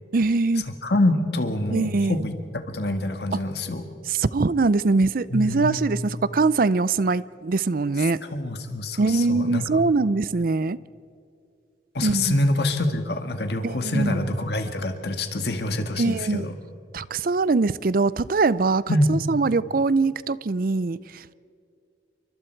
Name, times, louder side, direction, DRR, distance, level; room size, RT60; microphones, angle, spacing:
voice 1, 0.1-0.7 1.7-2.3 4.1-8.2 9.0-10.8 12.0-12.4 13.6-14.2 16.0-16.5 16.9-21.3, right 3 dB, 50° right, 0.5 m, -22 dB
voice 2, 0.8-3.8 5.3-5.9 8.3-9.6 11.9-16.5 18.9-19.2, left 1 dB, 60° left, 1.7 m, -25 dB
28.5 x 24.5 x 4.6 m
head